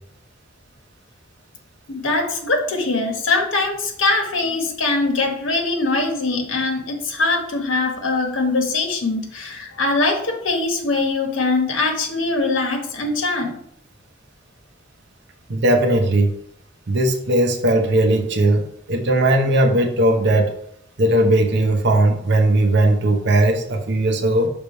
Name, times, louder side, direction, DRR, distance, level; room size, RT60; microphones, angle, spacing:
voice 1, 1.9-13.5, left 3 dB, 75° left, 2 dB, 1.1 m, -22 dB
voice 2, 15.5-16.3 16.9-20.5 21.0-24.5, right 1 dB, 60° right, 4 dB, 0.9 m, -18 dB
5.7 x 3.5 x 5.3 m, 0.68 s
head